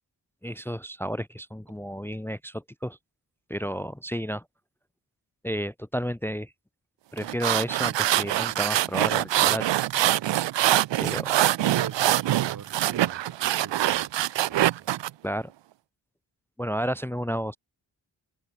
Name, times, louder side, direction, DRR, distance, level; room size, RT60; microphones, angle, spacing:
voice 1, 0.4-3.0 3.5-4.4 5.4-6.5 7.1-9.6 11.0-11.4 15.2-15.5 16.6-17.6, equal, 5° left, 0.7 m, -31 dB
sound 1, 7.2-15.1, right 14 dB, 85° right, 0.6 m, -24 dB
voice 2, 11.6-14.9, right 6 dB, 50° right, 1.3 m, -42 dB
open air
wide cardioid pair, 110°, 43 cm